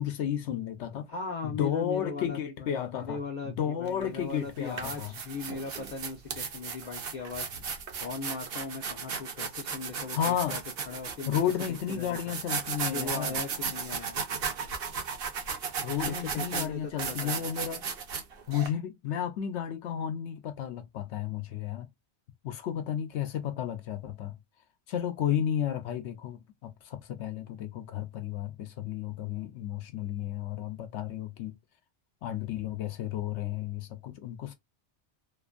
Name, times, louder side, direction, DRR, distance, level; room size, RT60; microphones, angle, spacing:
voice 1, 0.0-1.1 1.4-5.1 10.1-10.6 11.3-13.3 15.8-17.8 18.5-21.9 22.4-24.4 24.9-31.6 32.2-34.5, left 9 dB, 85° left, 0.9 m, -33 dB
voice 2, 1.1-7.5 8.0-10.6 10.9-11.4 11.7-12.4 12.9-14.2 16.0-17.5, left 4 dB, 55° left, 0.6 m, -38 dB
sound 1, 3.9-4.0 4.6-18.7, right 6 dB, 60° right, 0.9 m, -35 dB
2.5 x 2.5 x 2.3 m
omnidirectional pair, 1.1 m